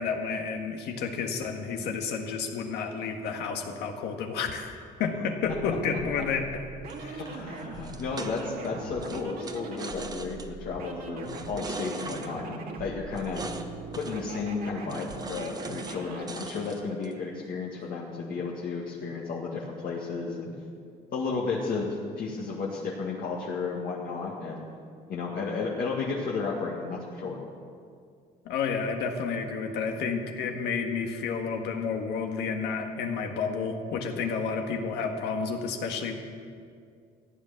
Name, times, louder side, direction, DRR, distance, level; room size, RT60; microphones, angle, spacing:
voice 1, 0.0-6.7 7.0-7.2 28.5-36.1, left 5 dB, 80° left, 4 dB, 1.6 m, -31 dB
sound 1, 5.5-16.3, right 4 dB, 65° right, 1.8 m, -41 dB
sound 2, 6.9-8.7 9.0-10.5 11.2-12.3 13.2-13.7 13.9-14.3 14.9-16.0 16.3-17.1, right 3 dB, 25° right, 1.0 m, -40 dB
voice 2, 7.2-13.5 14.0-20.5 21.1-24.7 25.1-27.4, left 4 dB, 60° left, -5 dB, 2.0 m, -33 dB
15.0 x 9.5 x 7.1 m, 2.2 s
cardioid pair, 110°, 17 cm